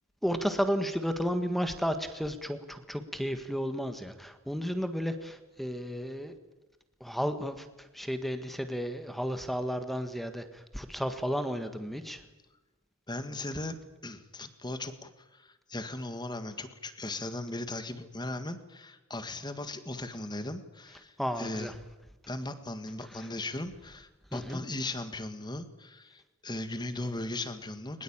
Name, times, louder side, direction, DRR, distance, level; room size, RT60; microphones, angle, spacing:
voice 1, 0.2-6.4 7.0-12.2 21.2-21.7 23.0-23.3 24.3-24.6, equal, ahead, 9 dB, 1.6 m, -33 dB
voice 2, 13.1-13.8 14.0-21.7 22.3-28.0, left 2 dB, 20° left, 10 dB, 1.8 m, -38 dB
22.5 x 21.0 x 8.9 m, 1.1 s
head